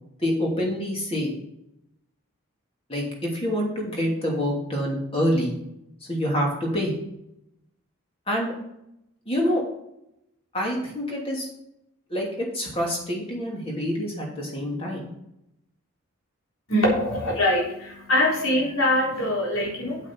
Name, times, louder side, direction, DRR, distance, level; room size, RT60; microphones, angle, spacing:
voice 1, 0.2-1.3 2.9-3.0 3.3-5.6 6.1-6.9 8.3-8.5 9.3-9.6 10.5-11.5 12.1-15.1, equal, 25° left, -2 dB, 2.9 m, -26 dB
voice 2, 16.7-20.0, left 1 dB, 80° left, -4 dB, 3.9 m, -23 dB
8.5 x 7.9 x 4.7 m, 0.80 s
head